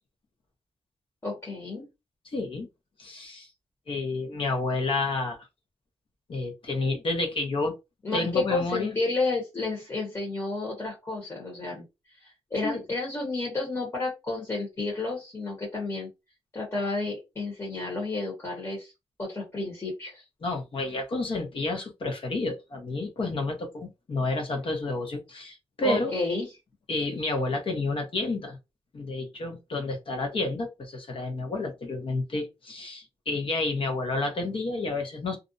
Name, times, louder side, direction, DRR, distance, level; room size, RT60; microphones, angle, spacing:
voice 1, 1.2-1.9 8.0-11.8 12.2-16.1 16.5-18.9 19.2-20.2 25.8-26.5, left 3 dB, 30° left, -3 dB, 1.1 m, -31 dB
voice 2, 2.3-2.7 3.0-3.5 3.9-5.4 6.3-7.7 8.1-9.0 12.6-12.8 20.4-26.1 26.9-28.6 28.9-35.4, left 2 dB, 60° left, 4 dB, 0.9 m, -30 dB
2.5 x 2.0 x 2.6 m, 0.24 s
cardioid pair, 90°, 10 cm